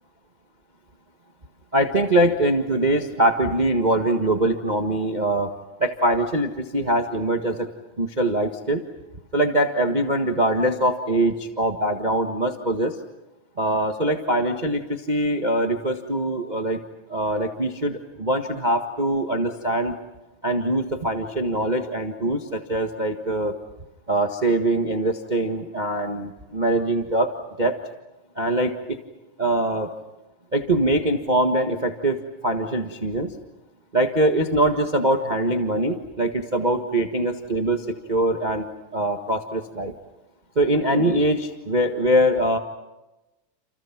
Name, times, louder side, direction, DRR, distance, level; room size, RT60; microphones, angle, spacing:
voice 1, 1.7-5.5 5.8-7.7 8.0-8.8 9.3-13.0 13.6-16.8 17.1-19.9 20.4-23.5 24.1-27.3 27.6-27.7 28.4-28.7 29.4-29.9 30.5-33.3 33.9-38.7 38.9-39.9 40.5-42.6, right 1 dB, 70° right, 5 dB, 0.4 m, -23 dB
29.0 x 29.0 x 6.0 m, 1.0 s
omnidirectional pair, 3.8 m